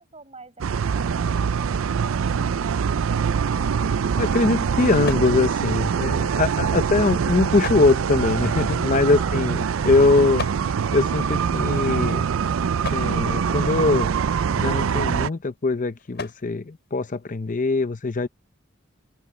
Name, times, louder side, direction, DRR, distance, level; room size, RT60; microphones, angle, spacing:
voice 1, 0.0-2.5 9.1-9.7, right 3 dB, 30° right, 7.0 m, -46 dB
sound 1, 0.6-15.3, right 6 dB, 75° right, 0.4 m, -24 dB
sound 2, 3.4-17.8, left 4 dB, 55° left, 6.7 m, -43 dB
voice 2, 4.2-10.4 10.9-12.3 12.9-14.1 14.6-18.3, left 3 dB, 40° left, 0.6 m, -22 dB
open air
head